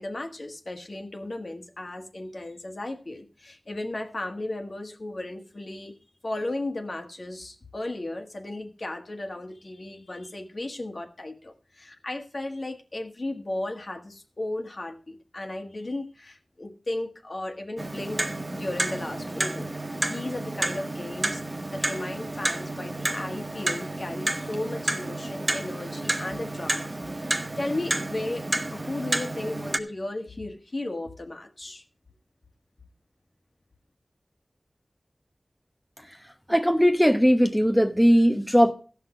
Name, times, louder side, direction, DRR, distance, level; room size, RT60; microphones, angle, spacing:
voice 1, 0.0-5.9 6.2-26.9 27.6-31.8, left 2 dB, 55° left, 4 dB, 1.5 m, -35 dB
Clock, 17.8-29.8, right 2 dB, 35° right, 0.9 m, -31 dB
voice 2, 36.5-38.7, equal, ahead, 6 dB, 0.9 m, -19 dB
15.5 x 6.0 x 4.9 m, 0.38 s
wide cardioid pair, 75°, 0 cm